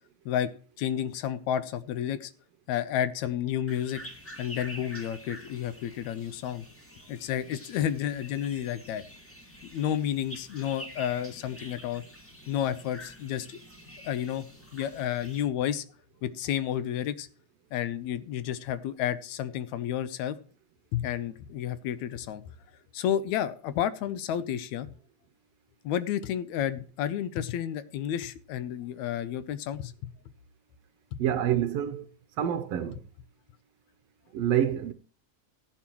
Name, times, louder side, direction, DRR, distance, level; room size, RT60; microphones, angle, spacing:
voice 1, 0.8-2.3 2.7-4.0 4.4-6.7 7.1-9.0 9.7-12.0 12.5-13.6 14.0-14.5 14.7-15.8 16.2-17.3 17.7-20.4 20.9-22.4 22.9-24.9 25.8-29.9 31.1-31.2, left 10 dB, 80° left, 2.0 m, -31 dB
sound 1, 3.7-15.4, equal, 5° left, 1.1 m, -47 dB
voice 2, 31.2-32.0 32.4-33.0 34.3-34.9, right 10 dB, 70° right, 1.6 m, -27 dB
15.5 x 10.5 x 3.0 m
omnidirectional pair, 3.4 m